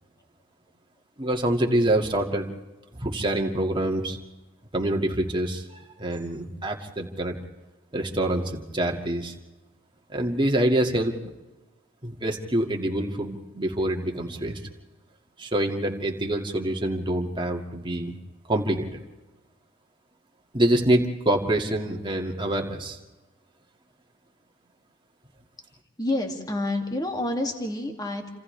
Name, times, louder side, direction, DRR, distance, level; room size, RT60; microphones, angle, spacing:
voice 1, 1.2-2.5 2.9-4.2 4.7-7.4 7.9-9.3 10.1-11.2 12.0-14.6 15.4-18.2 18.5-19.0 20.5-23.0, right 1 dB, 25° right, 1 dB, 2.1 m, -26 dB
voice 2, 26.0-28.3, left 1 dB, 20° left, 3 dB, 2.3 m, -28 dB
29.5 x 26.5 x 3.3 m, 1.1 s
head